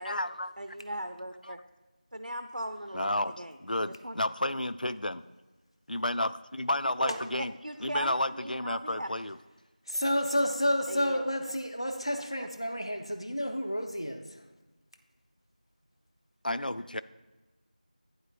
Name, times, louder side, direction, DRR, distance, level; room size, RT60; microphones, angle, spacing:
voice 1, 0.0-0.5 2.9-3.3 3.6-5.2 5.9-7.5 7.8-9.4 16.4-17.0, left 1 dB, 85° left, 14 dB, 0.4 m, -31 dB
voice 2, 0.6-1.6 2.1-3.6 3.9-4.2 7.0-9.1 10.9-11.4 12.4-12.5, right 1 dB, 75° right, 7 dB, 0.5 m, -38 dB
voice 3, 9.9-14.2, equal, 40° left, 6 dB, 0.6 m, -30 dB
11.5 x 9.3 x 2.3 m, 1.2 s
figure-of-eight pair, 180°, 5 cm